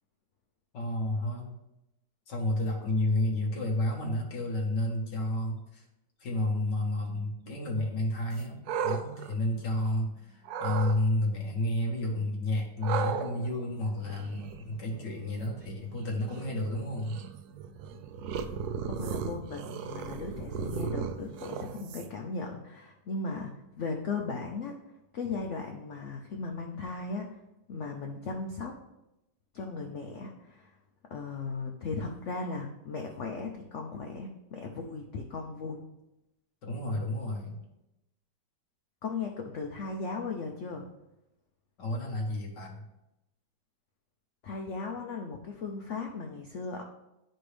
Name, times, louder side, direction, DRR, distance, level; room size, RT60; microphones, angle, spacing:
voice 1, 0.7-1.6 2.3-5.9 6.2-8.6 8.8-17.2 36.6-37.6 41.8-42.9, left 1 dB, 65° left, 0 dB, 1.9 m, -31 dB
sound 1, 8.3-10.0 10.4-11.0 12.8-22.3, right 6 dB, 75° right, 0.9 m, -37 dB
voice 2, 18.9-24.7 25.1-27.4 27.7-28.7 29.5-30.7 31.1-35.8 39.0-40.9 44.4-46.8, left 4 dB, 80° left, 2 dB, 0.6 m, -37 dB
11.0 x 4.4 x 3.3 m, 0.90 s
omnidirectional pair, 2.1 m